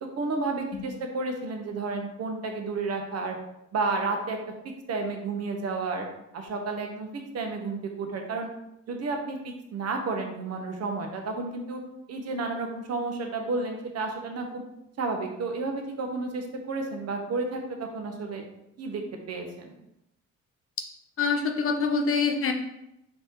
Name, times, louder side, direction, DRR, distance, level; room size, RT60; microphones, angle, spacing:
voice 1, 0.0-3.4 3.7-4.4 4.9-6.1 6.3-8.5 8.9-11.8 12.1-14.6 15.0-18.4 18.8-19.0 19.3-19.7, right 3 dB, 55° right, 3 dB, 0.8 m, -31 dB
voice 2, 21.2-22.5, left 5 dB, 45° left, 4 dB, 0.7 m, -25 dB
4.1 x 2.7 x 3.6 m, 0.84 s
cardioid pair, 90°, 30 cm